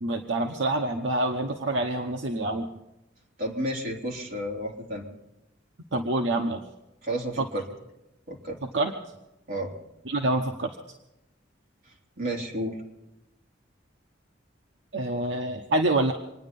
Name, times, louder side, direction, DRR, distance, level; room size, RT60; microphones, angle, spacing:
voice 1, 0.0-2.7 5.9-6.6 7.4-7.5 8.6-8.9 10.1-10.8 14.9-16.1, right 2 dB, 70° right, 3 dB, 1.0 m, -26 dB
voice 2, 3.4-5.0 7.0-7.6 8.3-8.6 9.5-9.7 12.2-12.8, right 1 dB, 50° right, -1 dB, 3.3 m, -31 dB
26.5 x 10.0 x 5.3 m, 0.94 s
head